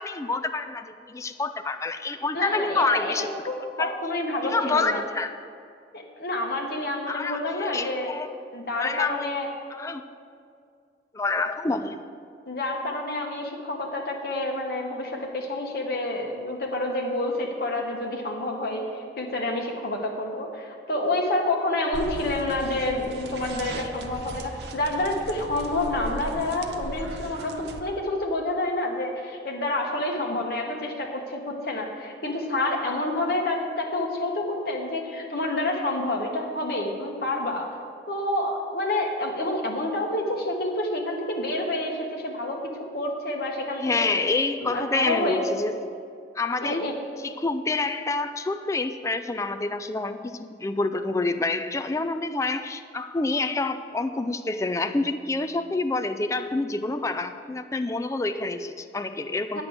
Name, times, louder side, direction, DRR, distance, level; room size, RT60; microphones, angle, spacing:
voice 1, 0.0-3.3 3.8-4.0 4.5-5.3 7.1-8.3 8.8-9.3 9.7-10.0 11.1-12.0 43.8-46.0 46.4-46.9 47.2-59.6, left 3 dB, 15° left, 9 dB, 0.3 m, -27 dB
voice 2, 2.3-5.0 5.9-8.1 8.5-9.5 12.5-37.7 38.1-44.1 44.6-45.4 46.6-46.9 59.5-59.6, left 2 dB, 55° left, 0 dB, 1.3 m, -28 dB
sound 1, 21.9-27.8, right 2 dB, 65° right, 0.6 m, -37 dB
8.9 x 6.0 x 7.9 m, 2.3 s
head